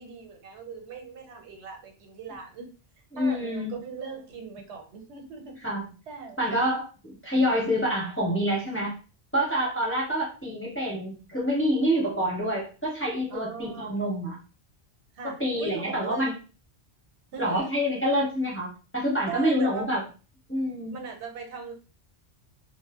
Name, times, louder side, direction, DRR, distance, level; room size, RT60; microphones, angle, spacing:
voice 1, 0.0-2.7 3.2-5.6 6.1-6.7 13.3-13.9 15.1-16.3 17.3-17.7 19.3-19.9 20.9-21.7, right 5 dB, 80° right, 3 dB, 0.9 m, -40 dB
voice 2, 3.1-3.7 5.6-5.8 6.4-8.9 9.3-14.4 15.4-16.3 17.4-20.0 20.5-20.9, equal, 15° left, -4 dB, 0.7 m, -27 dB
2.0 x 2.0 x 3.4 m, 0.35 s
omnidirectional pair, 1.1 m